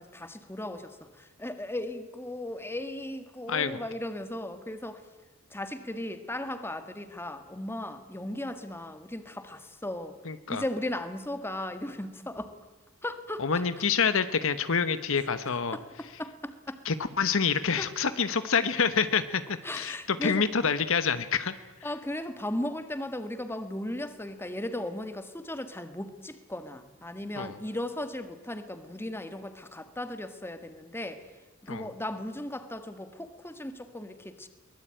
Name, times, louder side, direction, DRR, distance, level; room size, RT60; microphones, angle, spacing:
voice 1, 0.0-5.0 5.5-10.2 10.5-12.5 13.0-13.6 15.5-16.8 17.8-17.9 19.6-20.5 21.8-31.2 31.6-34.5, left 1 dB, 10° left, 9 dB, 1.8 m, -36 dB
voice 2, 3.5-3.8 10.2-10.6 13.4-15.8 16.8-21.5 27.4-27.6 31.7-31.9, left 6 dB, 65° left, 12 dB, 1.1 m, -27 dB
23.5 x 20.0 x 9.0 m, 1.2 s
head